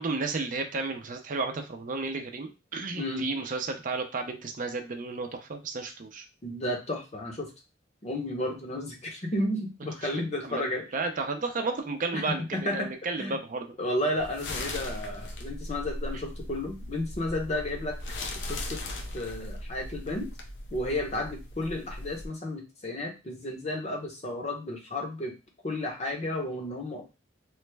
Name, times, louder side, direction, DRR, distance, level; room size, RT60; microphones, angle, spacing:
voice 1, 0.0-6.2 10.1-13.6, right 3 dB, 45° right, 5 dB, 0.5 m, -33 dB
voice 2, 3.0-3.3 6.4-7.5 8.0-10.9 12.1-13.4 13.8-18.0 18.5-18.8 19.1-20.3 20.7-25.3 25.6-27.0, left 1 dB, 40° left, 2 dB, 0.8 m, -32 dB
sound 1, 14.2-22.3, left 1 dB, 75° left, 0.6 m, -38 dB
3.2 x 2.1 x 3.2 m, 0.28 s
head